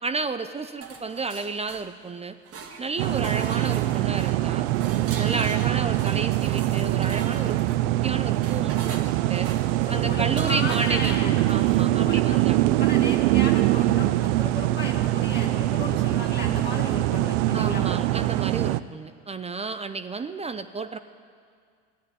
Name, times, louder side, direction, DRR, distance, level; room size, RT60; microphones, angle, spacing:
voice 1, 0.0-2.4 2.8-4.7 5.1-7.6 8.0-9.5 9.9-11.2 11.5-12.6 17.5-21.0, right 4 dB, 15° right, 11 dB, 0.5 m, -32 dB
sound 1, 0.8-2.1 2.5-11.9, right 5 dB, 35° right, 1.8 m, -41 dB
sound 2, 3.0-18.8, right 15 dB, 65° right, 0.5 m, -23 dB
voice 2, 9.8-11.4 11.9-12.5 12.8-18.0, left 3 dB, 25° left, -2 dB, 1.9 m, -35 dB
14.5 x 9.5 x 9.6 m, 2.1 s
hypercardioid pair, 80°, 39 cm